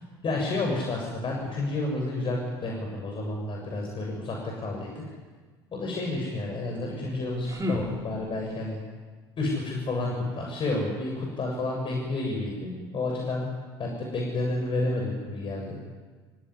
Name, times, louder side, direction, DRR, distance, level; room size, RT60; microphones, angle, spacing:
voice 1, 0.2-4.9 5.7-8.8 9.4-13.5 13.8-15.7, left 2 dB, 40° left, 0 dB, 7.2 m, -30 dB
sound 1, 7.0-8.6, left 1 dB, 25° right, 4.8 m, -35 dB
28.0 x 17.0 x 9.9 m, 1.4 s
hypercardioid pair, 65°, 13 cm